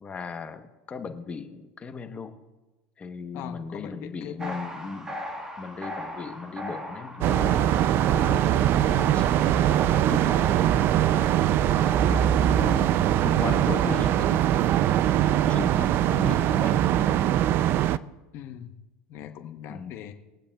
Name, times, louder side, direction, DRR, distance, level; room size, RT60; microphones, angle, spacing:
voice 1, 0.0-2.3 3.0-5.1 5.6-10.4 11.5-11.8 12.1-12.7 13.2-16.8 17.8-17.9 19.7-19.9, left 5 dB, 25° left, 8 dB, 0.9 m, -38 dB
voice 2, 3.3-4.5 12.0-13.0 13.4-14.0 18.3-18.7 19.1-20.1, left 10 dB, 55° left, 6 dB, 0.8 m, -39 dB
sound 1, 4.4-13.0, left 1 dB, 15° right, 1.5 m, -39 dB
sound 2, 7.2-18.0, right 11 dB, 45° right, 0.3 m, -22 dB
21.5 x 8.5 x 2.3 m, 1.1 s
supercardioid pair, 120°, 5 cm